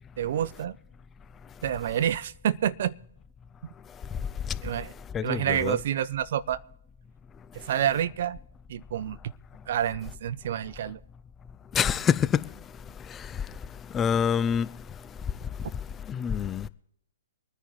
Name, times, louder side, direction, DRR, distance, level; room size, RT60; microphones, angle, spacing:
voice 1, 0.2-0.7 1.6-2.9 4.6-4.9 5.2-6.6 7.7-8.4 8.7-9.2 9.7-11.0, right 10 dB, 55° right, 0.6 m, -28 dB
voice 2, 5.1-5.8 11.7-12.5 13.1-13.3 13.9-14.7 16.1-16.7, left 8 dB, 20° left, 0.5 m, -26 dB
24.0 x 9.8 x 3.2 m
figure-of-eight pair, 120°, 0 cm